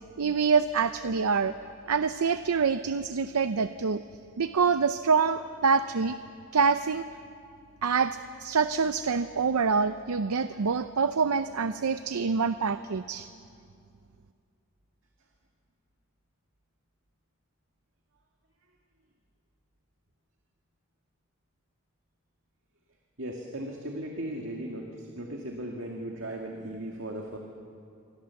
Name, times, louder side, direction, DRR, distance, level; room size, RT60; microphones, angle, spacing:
voice 1, 0.2-1.5 1.9-4.0 4.4-6.2 6.5-7.0 7.8-13.3, right 5 dB, 90° right, 11 dB, 0.6 m, -26 dB
voice 2, 23.2-27.4, right 1 dB, 65° right, 1 dB, 2.2 m, -37 dB
27.5 x 23.5 x 7.1 m, 2.4 s
head